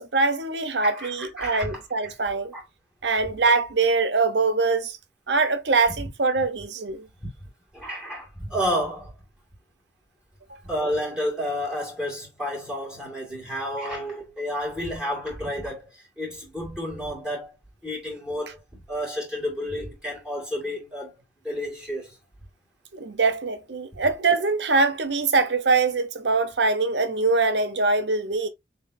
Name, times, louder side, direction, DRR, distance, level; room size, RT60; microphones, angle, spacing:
voice 1, 0.0-2.5 3.0-5.0 5.3-7.1 10.5-10.6 22.9-28.5, right 3 dB, 85° right, 0.9 m, -23 dB
voice 2, 0.8-2.1 2.5-2.6 7.2-7.3 7.7-9.1 10.6-17.6 17.8-21.1 21.4-22.2, equal, 5° right, 2.1 m, -31 dB
7.0 x 2.8 x 2.7 m
head